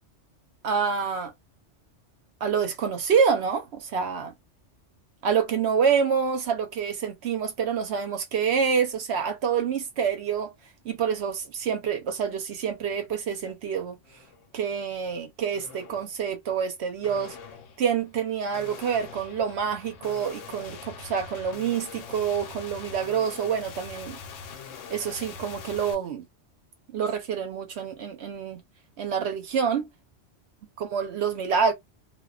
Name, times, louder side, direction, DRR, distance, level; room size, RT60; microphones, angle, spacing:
voice 1, 0.6-1.3 2.4-4.3 5.2-10.5 10.8-14.0 14.5-17.4 17.8-24.2 24.9-26.2 26.9-28.6 29.0-29.9 30.8-31.7, right 6 dB, 65° right, 0.9 m, -27 dB
sound 1, 12.2-12.4 12.8-13.5 14.0-14.5 15.5-16.1 17.0-25.9, left 6 dB, 90° left, 1.0 m, -43 dB
2.4 x 2.2 x 2.3 m
omnidirectional pair, 1.2 m